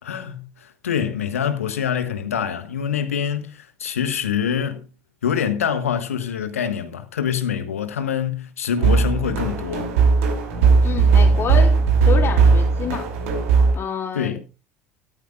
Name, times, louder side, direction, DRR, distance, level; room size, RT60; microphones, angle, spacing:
voice 1, 0.0-4.8 5.2-9.9 14.1-14.4, left 8 dB, 80° left, 1.4 m, -25 dB
sound 1, 8.8-13.7, right 4 dB, 70° right, 2.9 m, -17 dB
voice 2, 10.8-13.0 13.7-14.4, left 7 dB, 35° left, 3.9 m, -28 dB
13.0 x 13.0 x 2.4 m
figure-of-eight pair, 70°, 8 cm